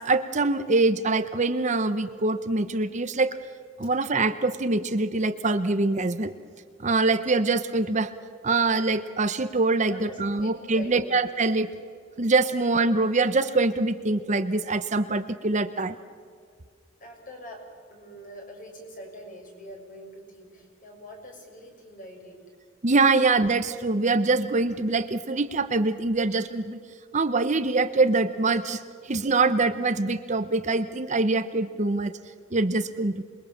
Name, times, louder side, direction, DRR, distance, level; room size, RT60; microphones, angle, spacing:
voice 1, 0.0-3.4 3.8-6.3 6.8-8.1 8.4-11.7 12.2-16.0 22.8-26.8 27.1-32.1 32.5-33.2, right 3 dB, 35° right, 10 dB, 0.9 m, -24 dB
voice 2, 9.8-11.0 12.5-12.6 17.0-17.6 17.9-22.4, equal, 45° left, 1 dB, 6.4 m, -44 dB
27.0 x 22.0 x 7.3 m, 2.1 s
head